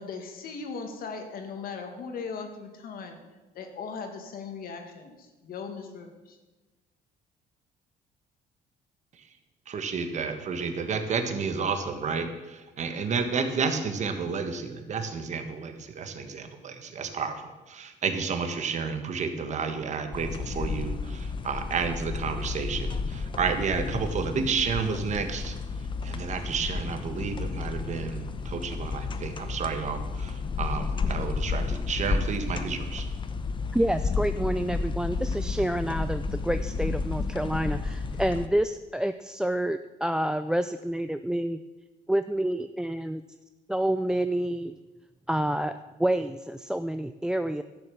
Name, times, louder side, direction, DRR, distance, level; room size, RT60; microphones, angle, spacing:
voice 1, 0.0-3.2 3.5-6.4, left 5 dB, 60° left, 5 dB, 1.9 m, -38 dB
voice 2, 9.7-25.5 26.0-33.1, right 5 dB, 45° right, 7 dB, 1.4 m, -31 dB
sound 1, 20.1-38.5, left 4 dB, 30° left, 0.8 m, -32 dB
voice 3, 33.7-41.6 42.1-43.2 43.7-44.8 45.3-47.6, right 1 dB, 5° right, 10 dB, 0.3 m, -28 dB
12.0 x 7.1 x 6.9 m, 1.2 s
cardioid pair, 110°, 17 cm